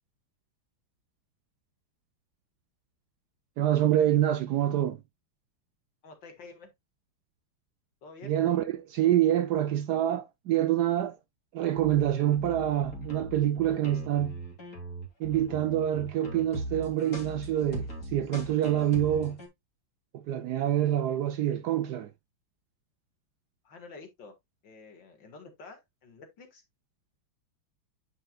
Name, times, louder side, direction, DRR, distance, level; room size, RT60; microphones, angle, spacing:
voice 1, 3.6-5.0 8.2-11.2 11.5-14.4 15.2-19.4 20.1-22.1, right 12 dB, 75° right, 0.9 m, -26 dB
voice 2, 6.0-6.7 8.0-8.4 23.6-24.3 24.6-26.6, left 4 dB, 65° left, 2.3 m, -49 dB
sound 1, 11.7-19.5, right 1 dB, 40° left, 3.0 m, -39 dB
9.4 x 6.1 x 2.3 m
omnidirectional pair, 2.2 m